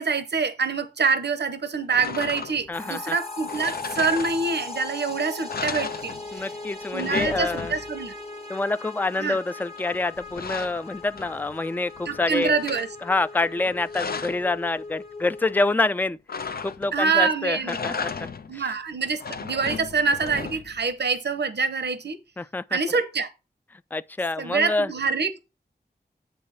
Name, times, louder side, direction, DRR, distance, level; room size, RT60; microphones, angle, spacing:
voice 1, 0.0-6.1 6.9-8.1 9.2-9.4 12.1-12.9 16.9-17.8 18.5-22.2 22.7-23.3 24.4-25.4, right 5 dB, 80° right, 0.8 m, -25 dB
sound 1, 1.9-2.8 3.5-4.8 5.1-5.2 5.5-6.6 6.8-8.1 9.8-11.6 12.0-12.9 13.6-14.5 16.3-17.1 17.6-18.6 19.0-20.8, left 5 dB, 65° left, 0.5 m, -35 dB
sound 2, 2.7-15.8, left 3 dB, 35° left, 1.3 m, -39 dB
voice 2, 2.7-3.2 6.3-7.7 8.5-12.6 13.0-16.2 16.6-18.6 22.4-22.8 23.9-24.9, left 2 dB, 10° left, 0.4 m, -27 dB
8.5 x 3.3 x 6.5 m
wide cardioid pair, 50°, 17 cm